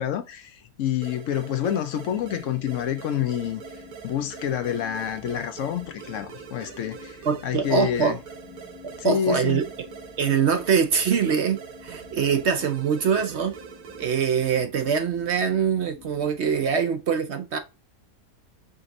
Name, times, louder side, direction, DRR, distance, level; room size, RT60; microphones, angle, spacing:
voice 1, 0.0-8.2 9.0-9.6, left 9 dB, 70° left, 0.9 m, -28 dB
sound 1, 1.0-14.4, right 7 dB, 90° right, 1.3 m, -44 dB
sound 2, 1.9-16.8, left 5 dB, 50° left, 1.9 m, -49 dB
voice 2, 7.3-8.2 9.0-9.6 10.2-13.5 14.0-17.6, right 6 dB, 60° right, 0.9 m, -23 dB
5.2 x 2.6 x 3.8 m
omnidirectional pair, 1.5 m